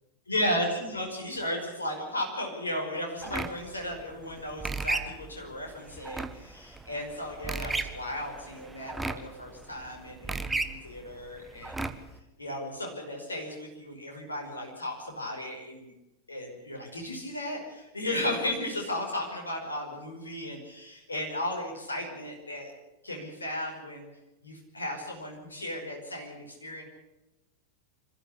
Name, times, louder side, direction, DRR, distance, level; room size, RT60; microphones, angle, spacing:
voice 1, 0.3-11.9 12.4-15.9 16.3-22.7 23.0-24.1 24.4-26.8, left 1 dB, 75° left, 1 dB, 5.5 m, -35 dB
sound 1, 3.2-12.2, right 3 dB, 10° right, 1.4 m, -36 dB
26.0 x 14.5 x 8.5 m, 0.98 s
figure-of-eight pair, 90°, 0 cm